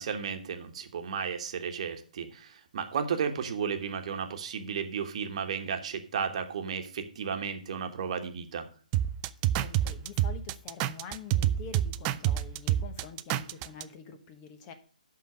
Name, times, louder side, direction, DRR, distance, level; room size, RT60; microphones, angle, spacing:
voice 1, 0.0-8.6, right 6 dB, 45° right, 6 dB, 1.3 m, -33 dB
sound 1, 8.9-13.8, right 12 dB, 20° right, 0.3 m, -27 dB
voice 2, 9.5-14.7, left 6 dB, 25° left, 8 dB, 1.1 m, -46 dB
11.5 x 3.9 x 6.2 m, 0.42 s
hypercardioid pair, 145°, 5 cm